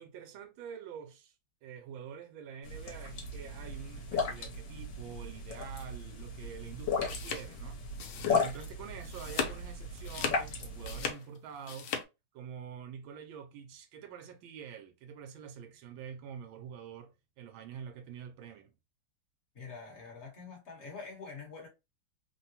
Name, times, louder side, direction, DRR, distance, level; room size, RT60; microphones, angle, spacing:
voice 1, 0.0-1.3 1.6-7.8 8.3-11.9 12.3-18.7, right 7 dB, 85° right, 1.4 m, -46 dB
sound 1, 2.6-11.1, left 4 dB, 70° left, 1.6 m, -36 dB
sound 2, 6.8-8.7 9.0-9.6 10.0-12.0, left 7 dB, 90° left, 1.5 m, -38 dB
voice 2, 19.5-21.7, left 4 dB, 40° left, 1.2 m, -45 dB
3.7 x 2.2 x 2.7 m
omnidirectional pair, 2.2 m